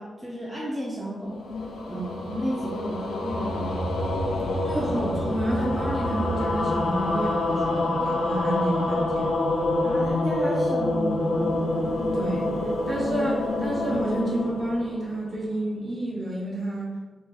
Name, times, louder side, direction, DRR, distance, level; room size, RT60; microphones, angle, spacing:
voice 1, 0.0-1.4 1.9-3.9 9.8-11.6, equal, 5° right, -6 dB, 0.4 m, -33 dB
sound 1, 1.2-15.6, left 1 dB, 90° left, 0.4 m, -27 dB
voice 2, 4.6-9.3 12.1-12.5 12.9-17.0, right 1 dB, 30° right, -5 dB, 0.8 m, -29 dB
2.6 x 2.4 x 3.7 m, 1.4 s
wide cardioid pair, 170°, 0 cm